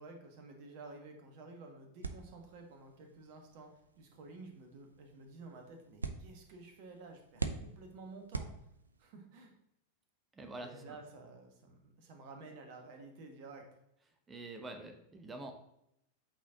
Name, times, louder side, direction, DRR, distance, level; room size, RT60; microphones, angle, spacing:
voice 1, 0.0-8.5 9.0-9.5 10.6-13.7, right 3 dB, 45° right, 4 dB, 1.3 m, -52 dB
sound 1, 2.0-9.1, right 4 dB, 75° right, 0.4 m, -45 dB
voice 2, 10.3-10.8 14.3-15.6, right 2 dB, 15° right, 6 dB, 0.8 m, -46 dB
8.1 x 4.2 x 2.8 m, 0.78 s
figure-of-eight pair, 90°, 0 cm